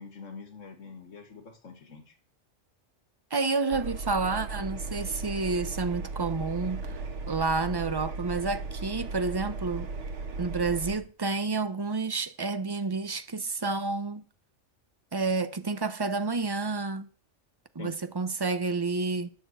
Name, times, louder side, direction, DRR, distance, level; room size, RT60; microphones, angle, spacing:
voice 1, 0.0-2.1 17.8-18.0, left 5 dB, 85° left, 2.1 m, -45 dB
voice 2, 3.3-7.0 7.3-9.9 10.4-14.2 15.1-17.1 17.7-19.3, right 3 dB, 25° right, 0.6 m, -29 dB
Engine, 3.7-11.0, right 3 dB, 70° right, 1.6 m, -36 dB
10.0 x 6.6 x 7.9 m
omnidirectional pair, 1.3 m